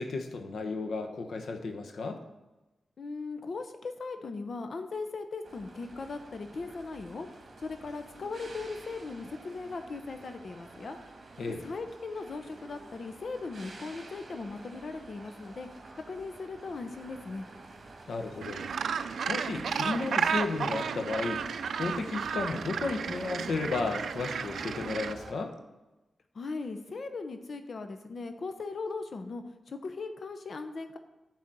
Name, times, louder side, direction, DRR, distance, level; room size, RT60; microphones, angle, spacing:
voice 1, 0.0-2.2 11.4-11.6 18.1-18.7 19.3-21.4 21.7-25.5, left 3 dB, 80° left, 5 dB, 1.1 m, -33 dB
voice 2, 3.0-7.3 7.6-11.0 11.5-15.7 16.1-17.5 26.3-31.0, left 3 dB, 60° left, 8 dB, 0.8 m, -38 dB
sound 1, 5.4-25.3, right 2 dB, 50° right, 1.9 m, -49 dB
Gull seagull, 18.4-25.1, right 6 dB, 90° right, 0.4 m, -33 dB
10.5 x 4.1 x 7.5 m, 1.1 s
wide cardioid pair, 90°, 0 cm